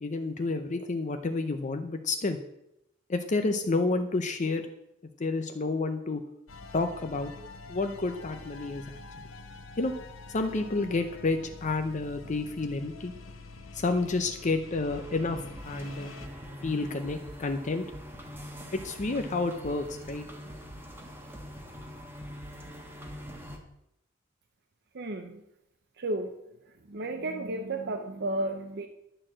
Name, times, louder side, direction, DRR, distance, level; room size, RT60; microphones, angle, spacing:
voice 1, 0.0-2.4 3.1-4.6 5.2-6.2 6.7-7.3 7.7-9.0 9.8-9.9 10.3-13.1 13.7-15.4 15.6-16.1 16.6-17.8 18.7-20.2, left 3 dB, 40° left, 7 dB, 0.6 m, -30 dB
sound 1, 6.5-16.3, left 3 dB, 80° left, 1.1 m, -46 dB
sound 2, 14.9-23.6, equal, 10° right, 1.3 m, -43 dB
voice 2, 24.9-25.4 26.0-26.3 26.9-28.9, right 2 dB, 55° right, 5 dB, 0.7 m, -33 dB
11.0 x 4.4 x 7.4 m, 0.83 s
head